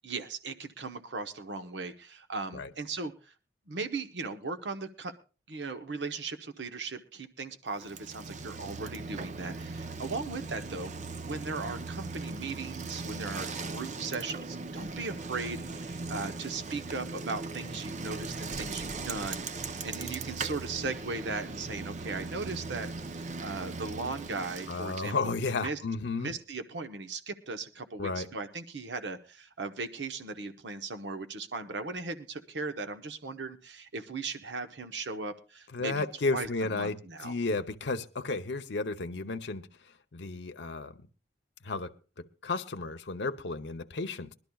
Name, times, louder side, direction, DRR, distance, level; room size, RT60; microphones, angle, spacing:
voice 1, 0.0-3.3 3.7-5.1 5.5-10.9 11.2-25.8 26.2-36.1 36.3-37.4, right 3 dB, 85° right, 0.9 m, -38 dB
Bicycle, 7.7-25.3, right 3 dB, 45° right, 0.6 m, -39 dB
voice 2, 24.7-26.4 28.0-28.3 35.7-39.7 40.1-40.9 41.6-44.3, left 3 dB, 80° left, 0.8 m, -33 dB
22.0 x 12.0 x 2.3 m
head